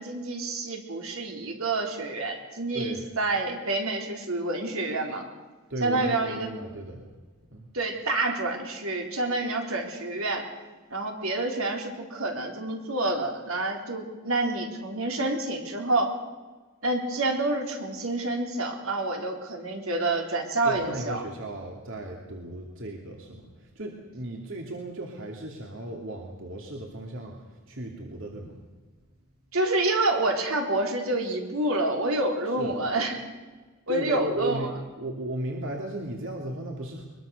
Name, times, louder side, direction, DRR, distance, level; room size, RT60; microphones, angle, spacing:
voice 1, 0.0-5.2 5.8-6.5 7.7-10.5 10.9-16.1 16.8-21.2 29.5-33.2 33.9-34.7, right 2 dB, 85° right, 2 dB, 4.0 m, -28 dB
voice 2, 5.7-7.0 7.5-7.7 20.6-28.6 32.6-32.8 33.9-37.1, right 1 dB, 65° right, 1 dB, 2.6 m, -35 dB
22.5 x 22.0 x 6.6 m, 1.3 s
head